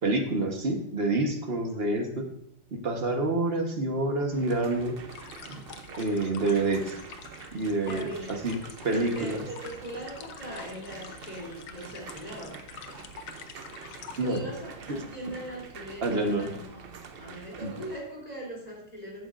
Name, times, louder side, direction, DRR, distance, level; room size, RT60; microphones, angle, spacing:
voice 1, 0.0-2.2 2.7-4.9 5.5-5.6 6.0-6.9 7.5-8.6 8.8-9.4 14.2-14.5 14.9-15.0 16.0-16.5 17.6-17.7, right 2 dB, 35° right, 3 dB, 1.3 m, -27 dB
sound 1, 4.3-18.0, right 5 dB, 75° right, 0.5 m, -46 dB
sound 2, 5.1-14.4, left 7 dB, 85° left, 1.6 m, -47 dB
voice 2, 7.9-8.4 8.9-12.6 14.2-19.3, right 1 dB, 20° left, -3 dB, 3.4 m, -40 dB
13.5 x 9.5 x 2.6 m, 0.73 s
omnidirectional pair, 2.1 m